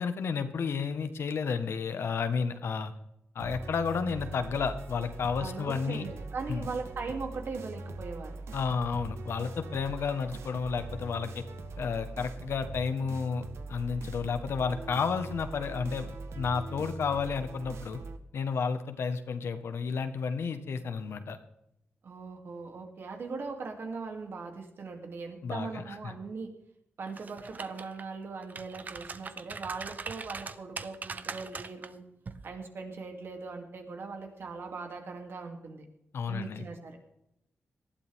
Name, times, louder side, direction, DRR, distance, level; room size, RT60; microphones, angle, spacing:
voice 1, 0.0-2.9 3.3-6.0 6.5-6.6 8.5-11.4 11.8-16.1 16.3-18.0 18.3-21.4 25.4-26.1 36.1-36.7, left 5 dB, 70° left, 9 dB, 1.5 m, -32 dB
sound 1, 3.4-18.2, right 2 dB, 90° right, 1.5 m, -42 dB
voice 2, 5.4-8.4 22.0-26.5 27.0-32.0 32.4-35.8 36.3-37.0, right 4 dB, 60° right, 3 dB, 3.0 m, -40 dB
sound 2, 27.1-28.0 28.4-31.9 32.3-32.5, right 4 dB, 40° right, 0.9 m, -41 dB
19.0 x 12.5 x 3.7 m, 0.80 s
wide cardioid pair, 135°, 4 cm